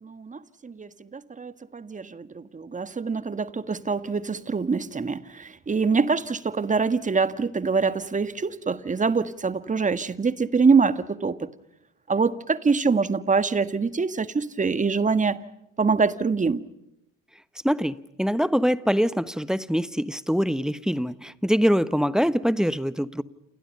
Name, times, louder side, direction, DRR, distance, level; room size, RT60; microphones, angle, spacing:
voice 1, 0.0-11.5 12.1-15.5 15.8-16.7, right 4 dB, 20° right, 1.6 m, -24 dB
voice 2, 17.6-23.2, equal, ahead, 1.2 m, -24 dB
29.5 x 28.5 x 5.4 m
hypercardioid pair, 70°, 41 cm